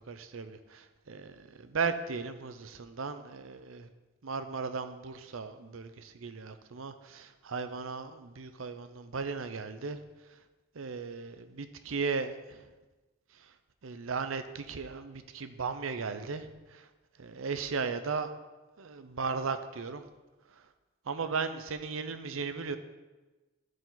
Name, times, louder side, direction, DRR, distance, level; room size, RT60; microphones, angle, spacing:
voice 1, 0.1-3.9 4.2-10.0 10.8-12.6 13.8-16.8 17.2-18.3 18.8-20.0 21.1-22.8, right 5 dB, 85° right, 10 dB, 0.6 m, -36 dB
14.0 x 4.9 x 4.0 m, 1.2 s
head